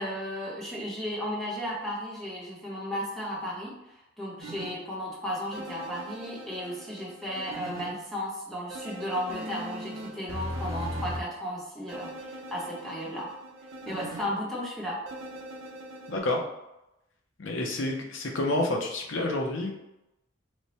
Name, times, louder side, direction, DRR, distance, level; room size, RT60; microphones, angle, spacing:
voice 1, 0.0-13.3 13.9-15.0, equal, ahead, -6 dB, 0.8 m, -34 dB
sound 1, 4.4-4.7 5.5-7.9 8.7-11.2 11.9-14.3 15.1-16.2, equal, 75° right, 0.6 m, -39 dB
voice 2, 16.1-16.5 17.4-19.7, left 2 dB, 65° left, 2 dB, 0.6 m, -29 dB
3.1 x 2.1 x 4.0 m, 0.89 s
head